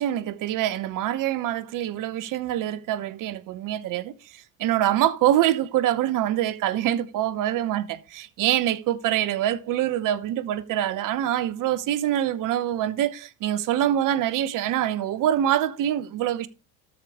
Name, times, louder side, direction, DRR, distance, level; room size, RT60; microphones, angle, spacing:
voice 1, 0.0-16.5, right 12 dB, 50° right, 0.9 m, -25 dB
13.0 x 5.0 x 3.4 m
hypercardioid pair, 70°, 40 cm